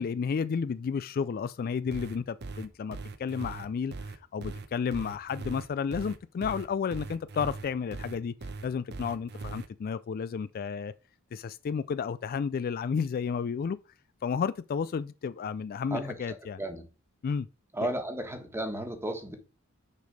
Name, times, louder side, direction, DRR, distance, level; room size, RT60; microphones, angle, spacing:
voice 1, 0.0-3.9 4.3-8.3 8.6-10.9 11.3-13.8 14.2-16.6 17.2-17.5 17.8-17.9, left 6 dB, 45° left, 0.3 m, -32 dB
sound 1, 1.9-9.7, right 3 dB, 55° right, 0.8 m, -40 dB
voice 2, 15.9-16.9 17.7-19.4, right 1 dB, 10° right, 1.4 m, -34 dB
6.6 x 5.2 x 4.8 m
head